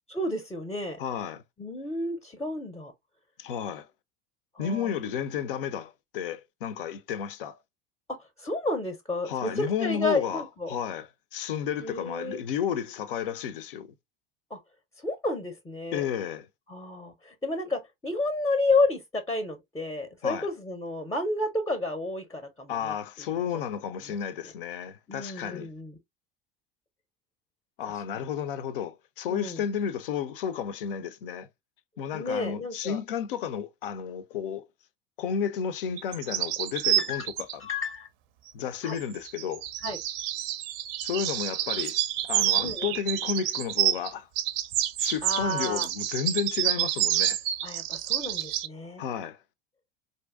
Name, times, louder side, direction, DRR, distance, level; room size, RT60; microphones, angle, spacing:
voice 1, 0.1-1.0 1.6-2.9 4.5-5.0 8.2-10.7 11.8-12.4 14.5-14.6 15.0-16.0 16.7-22.9 24.1-24.2 25.1-25.9 27.9-28.0 29.3-29.6 32.1-33.0 37.0-37.3 37.6-38.1 38.8-39.0 39.8-40.0 42.6-42.9 45.2-45.9 47.6-49.0, left 2 dB, 10° left, 0.6 m, -31 dB
voice 2, 1.0-1.4 3.4-3.9 4.6-7.6 9.3-13.9 15.9-16.5 20.2-20.5 22.7-25.7 27.8-31.5 32.0-34.7 35.2-37.6 38.5-39.7 41.0-44.3 45.0-47.4 49.0-49.4, left 8 dB, 65° left, 0.5 m, -32 dB
sound 1, 36.0-37.6 38.9-44.1 44.4-48.7, right 13 dB, 50° right, 0.5 m, -28 dB
4.3 x 2.6 x 2.4 m
figure-of-eight pair, 70°, 30 cm